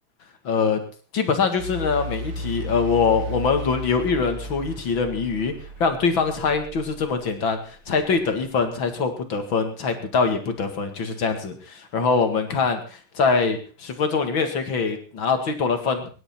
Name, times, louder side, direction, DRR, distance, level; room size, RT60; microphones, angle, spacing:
voice 1, 0.4-0.8 1.1-5.5 5.8-16.1, left 5 dB, 65° left, 7 dB, 2.8 m, -23 dB
sound 1, 1.6-8.7, equal, 40° right, 1.8 m, -35 dB
23.5 x 11.0 x 4.4 m, 0.37 s
omnidirectional pair, 2.4 m